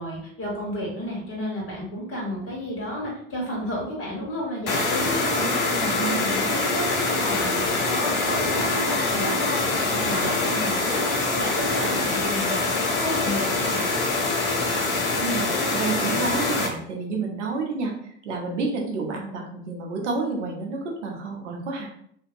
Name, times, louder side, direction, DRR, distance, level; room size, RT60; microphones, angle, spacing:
voice 1, 0.0-5.4 5.7-13.8, equal, 40° left, -3 dB, 1.3 m, -32 dB
sound 1, 4.7-16.7, left 3 dB, 80° left, 0.7 m, -24 dB
voice 2, 15.2-17.9 18.2-21.9, right 4 dB, 90° right, 1 dB, 0.7 m, -29 dB
2.6 x 2.2 x 2.5 m, 0.67 s
hypercardioid pair, 70°, 35 cm